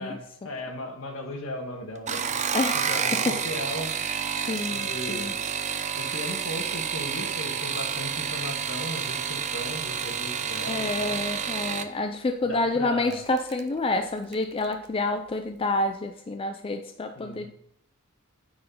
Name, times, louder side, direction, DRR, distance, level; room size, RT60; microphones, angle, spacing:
voice 1, 0.0-3.9 4.7-5.4 5.9-11.2 12.4-13.2 17.1-17.5, left 1 dB, 70° left, 2 dB, 1.7 m, -37 dB
sound 1, 2.0-11.9 13.1-13.6 14.0-14.4 14.7-14.8, right 7 dB, 35° right, 0.5 m, -29 dB
voice 2, 2.5-3.4 4.4-5.3 10.6-17.5, left 2 dB, 25° left, 7 dB, 0.4 m, -28 dB
9.4 x 4.3 x 5.6 m, 0.74 s
head